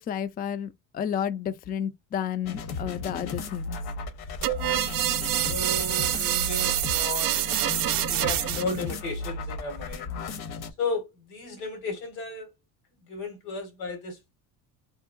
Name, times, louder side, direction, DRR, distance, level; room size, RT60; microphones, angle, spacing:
voice 1, 0.0-3.8, left 9 dB, 25° left, 0.3 m, -31 dB
sound 1, 2.4-10.7, left 4 dB, 65° left, 0.9 m, -35 dB
sound 2, 4.4-8.8, right 14 dB, 55° right, 0.5 m, -26 dB
voice 2, 5.5-10.2 10.8-12.5 13.0-14.3, left 3 dB, 90° left, 1.8 m, -34 dB
3.7 x 2.0 x 2.4 m
supercardioid pair, 80°, 41 cm